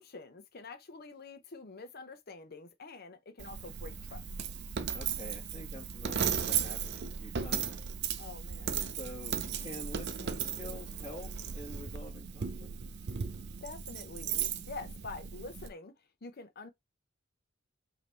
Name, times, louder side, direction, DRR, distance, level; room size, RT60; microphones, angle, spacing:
voice 1, 0.0-4.2 8.2-8.7 13.6-15.9 16.2-16.7, left 3 dB, 50° left, 0.8 m, -46 dB
Coin (dropping), 3.4-15.7, right 7 dB, 55° right, 0.6 m, -36 dB
voice 2, 4.9-7.7 8.8-9.4 9.6-12.7, left 1 dB, 20° left, 1.2 m, -47 dB
5.3 x 2.9 x 2.9 m
head